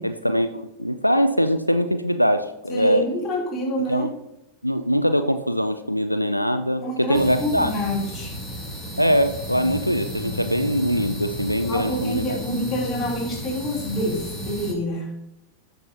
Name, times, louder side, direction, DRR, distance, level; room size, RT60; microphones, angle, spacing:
voice 1, 0.0-3.1 3.9-4.1 4.6-7.7 9.0-12.4, equal, 90° left, 9 dB, 0.4 m, -22 dB
voice 2, 2.7-4.1 6.8-8.4 11.6-15.2, equal, 20° left, -4 dB, 3.1 m, -27 dB
sound 1, 7.1-14.7, equal, 5° left, 2.3 m, -33 dB
14.0 x 5.4 x 2.8 m, 0.84 s
figure-of-eight pair, 90°, 0 cm